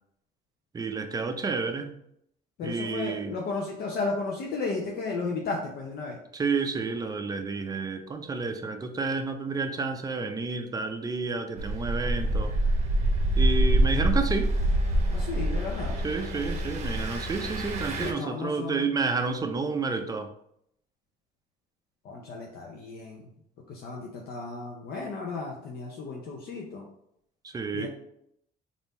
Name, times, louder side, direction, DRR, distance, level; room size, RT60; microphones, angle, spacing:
voice 1, 0.7-1.9 2.6-3.3 6.3-12.5 13.4-14.5 16.0-20.3 27.4-27.9, right 4 dB, 20° right, 6 dB, 0.4 m, -30 dB
voice 2, 2.6-6.2 15.1-16.0 18.0-18.9 22.0-23.3 23.7-26.9 27.7-27.9, left 3 dB, 65° left, -1 dB, 0.7 m, -34 dB
Engine, 11.6-18.1, right 1 dB, 40° right, 0.8 m, -26 dB
3.4 x 2.6 x 4.0 m, 0.74 s
cardioid pair, 110°, 17 cm